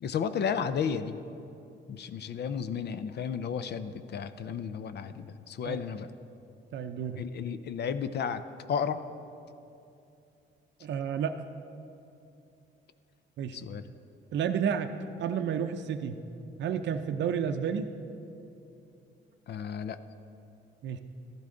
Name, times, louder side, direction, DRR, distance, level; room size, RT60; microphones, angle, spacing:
voice 1, 0.0-1.2 1.9-6.1 7.2-8.4 8.7-9.1 13.5-13.9 19.5-20.0, left 7 dB, 55° left, 12 dB, 0.5 m, -33 dB
voice 2, 6.7-7.2 10.8-11.3 13.4-13.6 14.3-14.9 15.2-16.2 16.6-17.9 20.8-21.0, right 8 dB, 65° right, 7 dB, 0.6 m, -31 dB
13.5 x 11.5 x 3.8 m, 2.7 s
cardioid pair, 90°, 20 cm